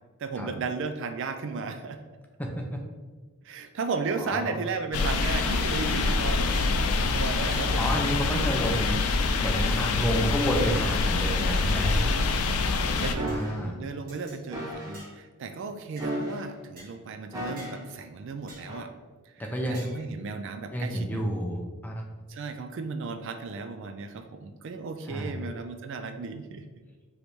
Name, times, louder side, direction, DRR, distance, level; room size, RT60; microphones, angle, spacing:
voice 1, 0.2-2.0 3.4-6.8 7.1-7.9 11.1-12.6 13.0-13.4 13.7-18.9 19.3-21.3 22.3-26.7, right 4 dB, 55° right, 7 dB, 0.3 m, -35 dB
voice 2, 2.4-2.8 4.2-4.6 7.8-12.0 13.2-13.8 19.4-19.9 20.7-22.0 25.1-25.3, equal, 5° left, 1 dB, 0.5 m, -30 dB
sound 1, 4.9-13.2, left 3 dB, 80° left, 0.4 m, -25 dB
sound 2, 6.5-6.9 7.5-7.7 8.0-8.3 8.7-9.0 9.7-9.9 10.5-10.9 11.5-12.0 12.5-12.8 13.3-13.5 14.1-14.4 14.9-15.2 16.0-16.1 16.8-16.9 17.6-17.8 18.5-18.7 19.7-20.1, right 1 dB, 40° right, 1.3 m, -49 dB
sound 3, 13.2-13.6 14.5-15.0 16.0-16.6 17.3-17.9 18.7-18.9, right 1 dB, 15° right, 0.8 m, -34 dB
5.1 x 3.1 x 3.1 m, 1.4 s
head